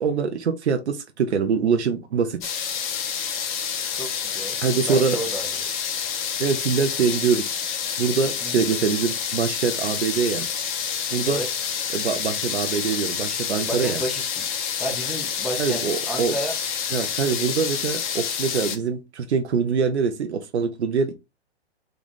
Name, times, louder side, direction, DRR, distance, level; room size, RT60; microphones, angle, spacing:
voice 1, 0.0-2.5 4.6-5.2 6.4-7.6 8.0-10.5 11.1-11.4 11.9-14.0 15.6-16.3 16.9-21.1, right 6 dB, 80° right, 0.7 m, -24 dB
sound 1, 2.4-18.8, left 7 dB, 45° left, 0.9 m, -28 dB
voice 2, 3.9-4.6 4.9-5.7 8.4-8.6 11.2-11.5 13.7-14.5 14.8-16.6, right 1 dB, ahead, 0.5 m, -32 dB
3.9 x 2.3 x 3.6 m
hypercardioid pair, 130°, 33 cm